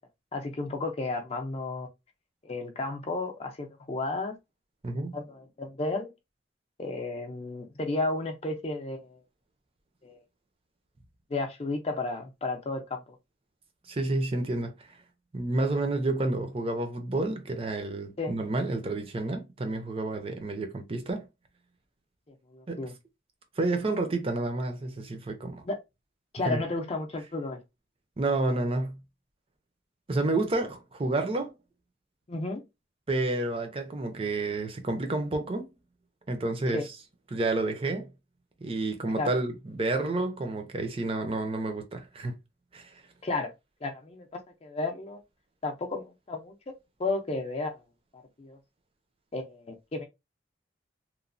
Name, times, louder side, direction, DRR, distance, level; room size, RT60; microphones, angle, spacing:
voice 1, 0.3-1.9 2.4-4.4 5.1-6.1 6.8-9.2 10.0-10.2 11.3-13.2 18.2-18.3 22.3-22.9 25.6-25.8 26.3-27.6 32.3-32.6 36.7-36.8 39.2-39.3 43.2-43.5 43.8-45.2 45.6-46.5 47.0-47.8 48.1-48.6 49.3-50.1, left 2 dB, 35° left, 0.5 m, -33 dB
voice 2, 4.8-5.2 13.9-15.0 15.3-21.3 22.7-22.8 23.6-25.6 26.5-26.6 28.2-29.0 30.1-31.5 33.1-35.7 36.3-36.9 37.3-38.1 38.6-42.4 42.7-43.0, right 2 dB, 30° right, 0.5 m, -30 dB
3.0 x 2.1 x 2.5 m
head